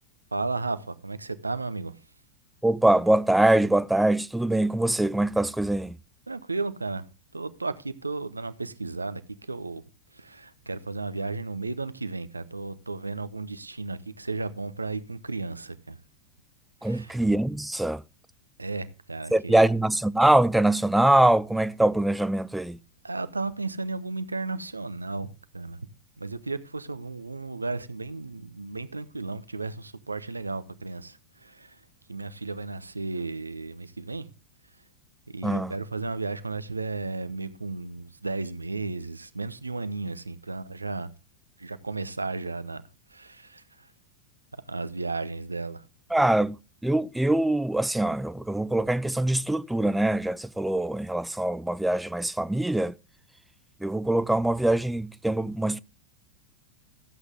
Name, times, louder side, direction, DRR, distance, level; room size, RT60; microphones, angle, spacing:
voice 1, 0.3-1.9 6.3-7.1 7.3-9.2 9.5-9.8 10.2-16.0 16.8-17.2 18.6-19.7 23.0-25.8 26.2-31.8 32.1-34.3 35.3-41.1 41.6-42.8 43.1-43.6 44.7-45.8, right 3 dB, 80° right, 0.8 m, -34 dB
voice 2, 2.6-6.0 16.8-18.0 19.3-22.8 35.4-35.7 46.1-46.6 46.8-52.9 53.8-55.8, right 1 dB, 5° right, 0.4 m, -23 dB
14.0 x 8.0 x 3.7 m
figure-of-eight pair, 90°, 0 cm